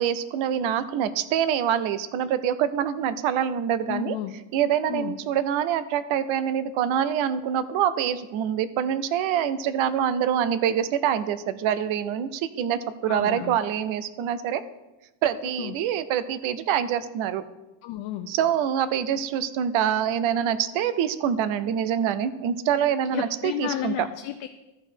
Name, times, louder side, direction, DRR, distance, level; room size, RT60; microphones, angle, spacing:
voice 1, 0.0-4.2 4.5-14.6 15.2-17.4 18.3-24.1, right 9 dB, 75° right, 14 dB, 0.8 m, -25 dB
voice 2, 3.9-4.3 4.9-5.2 13.1-13.6 15.6-15.7 17.8-18.3 23.1-24.5, left 12 dB, 65° left, 8 dB, 0.6 m, -32 dB
13.5 x 4.8 x 4.5 m, 1.0 s
cardioid pair, 175°, 49 cm